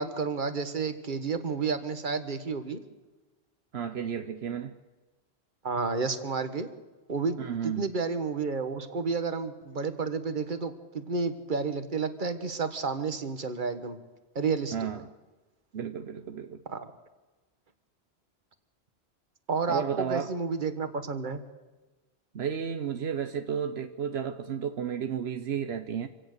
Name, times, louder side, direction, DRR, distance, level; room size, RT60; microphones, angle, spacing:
voice 1, 0.0-2.8 5.6-6.7 7.1-7.4 7.6-14.0 14.3-14.7 16.7-16.9 19.5-21.4, right 4 dB, 50° right, 1.6 m, -31 dB
voice 2, 3.7-4.7 7.4-7.9 14.7-15.1 15.7-16.6 19.7-20.3 22.3-26.1, right 7 dB, 75° right, 1.1 m, -32 dB
25.5 x 17.0 x 6.7 m
omnidirectional pair, 1.1 m